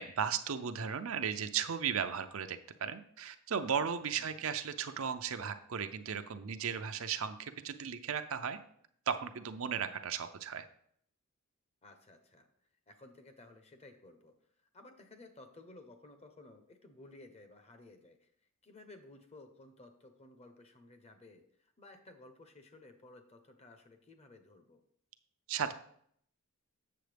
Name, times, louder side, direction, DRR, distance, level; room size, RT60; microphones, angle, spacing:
voice 1, 0.0-8.6 9.1-10.6 25.5-25.7, right 7 dB, 70° right, 8 dB, 0.6 m, -36 dB
voice 2, 11.8-12.5 12.9-14.3 14.7-18.3 18.6-24.8, left 2 dB, 30° left, 6 dB, 0.8 m, -56 dB
7.8 x 6.9 x 3.4 m, 0.66 s
head